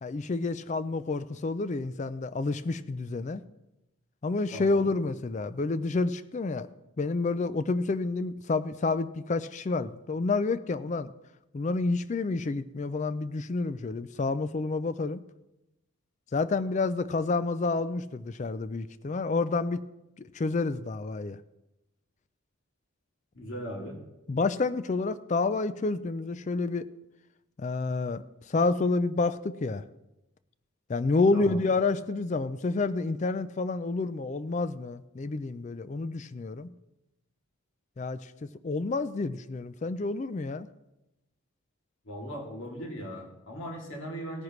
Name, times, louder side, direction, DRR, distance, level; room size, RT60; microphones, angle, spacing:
voice 1, 0.0-3.4 4.2-6.7 7.0-11.1 11.5-15.2 16.3-19.8 20.2-21.4 24.3-26.9 27.6-29.8 30.9-36.7 38.0-40.7, left 3 dB, 35° left, 14 dB, 0.3 m, -29 dB
voice 2, 4.5-4.9 23.3-24.0 31.3-31.6 42.0-44.4, equal, 60° left, -1 dB, 2.7 m, -38 dB
18.0 x 9.8 x 3.2 m, 0.95 s
head